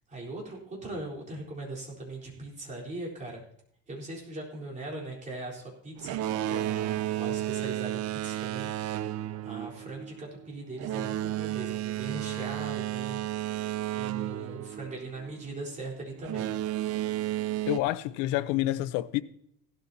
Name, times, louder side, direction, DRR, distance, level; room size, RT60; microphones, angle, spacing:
voice 1, 0.1-3.4 3.9-16.6 17.5-17.7, right 2 dB, 25° right, 4.1 m, -40 dB
Boat Water vehicle, 6.0-15.4 16.2-17.8, right 14 dB, 50° right, 0.6 m, -32 dB
voice 2, 17.7-19.2, left 16 dB, 85° left, 0.8 m, -28 dB
16.5 x 12.5 x 2.8 m
cardioid pair, 150°, 31 cm